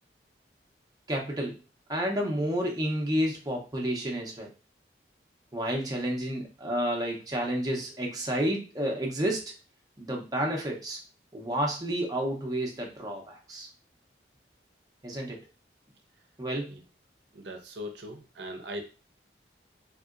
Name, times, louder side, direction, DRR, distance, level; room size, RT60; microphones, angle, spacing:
voice 1, 1.1-1.6 1.9-4.5 5.5-9.5 10.0-11.0 11.3-13.7 15.0-15.4 16.4-16.8, equal, 20° right, 0 dB, 0.6 m, -30 dB
voice 2, 17.3-18.8, equal, 75° right, 4 dB, 0.6 m, -39 dB
3.6 x 2.7 x 2.4 m, 0.32 s
head